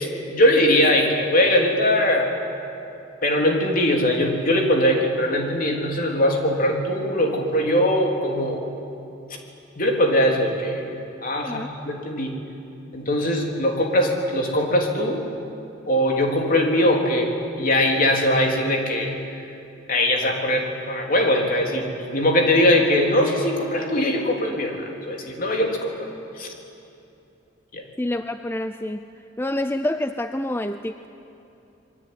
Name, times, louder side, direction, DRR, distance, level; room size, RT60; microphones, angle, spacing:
voice 1, 0.0-2.3 3.2-8.6 9.8-10.9 11.2-12.3 12.9-15.2 15.9-17.3 17.6-19.2 19.9-21.8 22.1-24.8 25.1-26.1 26.4-26.5 27.7-27.8, left 1 dB, 45° left, 1 dB, 3.6 m, -21 dB
voice 2, 28.0-29.0 29.4-31.1, left 1 dB, 10° left, 9 dB, 0.5 m, -27 dB
27.5 x 22.5 x 9.6 m, 2.8 s
head